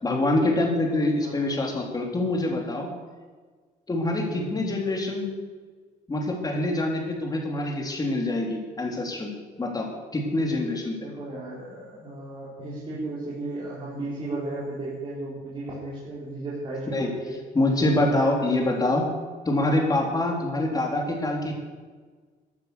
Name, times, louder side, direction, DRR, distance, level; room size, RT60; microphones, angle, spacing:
voice 1, 0.0-2.9 3.9-5.3 6.1-9.3 9.6-10.9 16.9-17.1 17.5-19.0 19.5-21.5, left 2 dB, 20° left, 0 dB, 3.7 m, -25 dB
voice 2, 4.3-4.6 10.8-17.3 17.8-19.0 20.7-20.9, right 2 dB, 30° right, -8 dB, 4.8 m, -35 dB
15.0 x 9.6 x 6.9 m, 1.5 s
cardioid pair, 110°, 17 cm